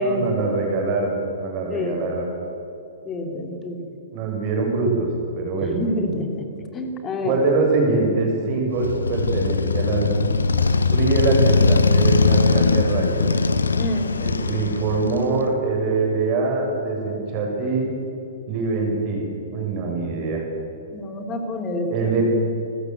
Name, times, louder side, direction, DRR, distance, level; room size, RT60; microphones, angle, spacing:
voice 1, 0.0-2.3 3.8-5.1 5.3-5.7 7.2-10.3 10.9-13.2 14.2-17.9 18.5-19.2 19.5-20.4 21.9-22.2, right 3 dB, 35° right, 0 dB, 7.4 m, -23 dB
voice 2, 1.7-2.0 3.0-3.8 5.6-7.3 13.8-14.5 20.9-22.1, left 1 dB, 20° left, 5 dB, 3.3 m, -27 dB
Motorcycle, 8.7-15.4, left 4 dB, 70° left, 1.1 m, -20 dB
29.0 x 15.0 x 8.2 m, 2.9 s
figure-of-eight pair, 110°, 0 cm